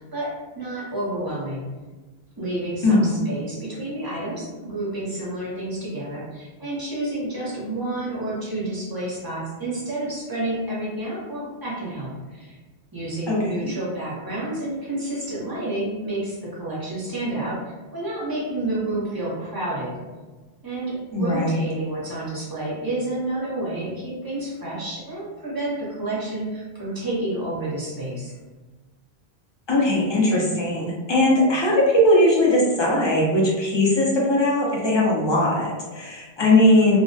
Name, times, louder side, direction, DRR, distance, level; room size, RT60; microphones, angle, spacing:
voice 1, 0.0-1.7 2.4-12.5 12.9-19.9 20.6-28.3, right 1 dB, 25° right, -7 dB, 0.7 m, -30 dB
voice 2, 2.8-3.2 13.3-13.7 21.1-21.6 29.7-37.0, left 1 dB, 35° left, -5 dB, 0.5 m, -19 dB
2.3 x 2.1 x 2.6 m, 1.3 s
omnidirectional pair, 1.1 m